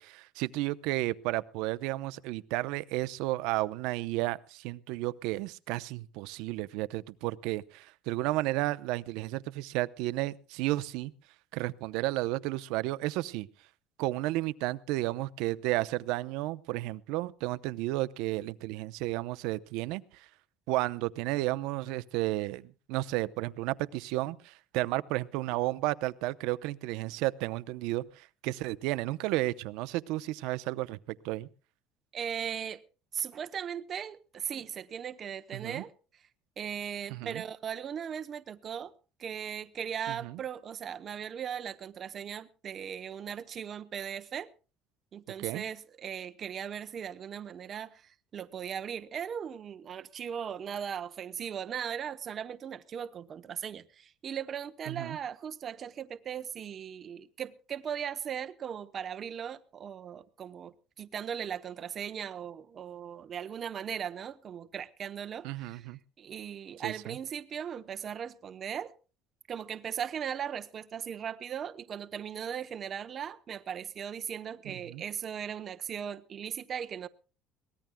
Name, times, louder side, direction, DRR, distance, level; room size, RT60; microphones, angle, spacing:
voice 1, 0.0-11.1 11.5-13.5 14.0-20.3 20.7-31.0 31.2-31.5 35.5-35.8 37.1-37.4 40.1-40.4 45.4-45.6 54.9-55.2 65.4-66.0 66.8-67.2 74.6-75.0, right 18 dB, 75° right, 0.7 m, -32 dB
voice 2, 32.1-32.8 33.1-35.9 36.6-38.9 39.2-44.5 45.1-65.9 66.2-68.9 69.5-77.1, right 8 dB, 35° right, 0.8 m, -38 dB
23.0 x 18.0 x 2.3 m
cardioid pair, 155°, 0 cm